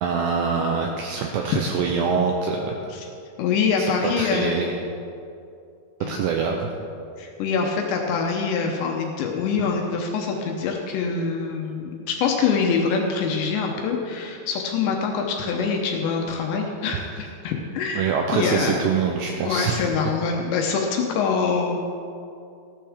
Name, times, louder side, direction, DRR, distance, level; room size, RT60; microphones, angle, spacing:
voice 1, 0.0-2.8 3.8-4.8 6.1-6.7 18.0-19.8, right 5 dB, 90° right, 1 dB, 2.5 m, -24 dB
voice 2, 3.4-4.5 6.0-6.2 7.2-18.1 18.3-18.7 19.4-21.8, left 5 dB, 75° left, 1 dB, 2.8 m, -25 dB
15.0 x 12.0 x 3.6 m, 2.6 s
omnidirectional pair, 5.8 m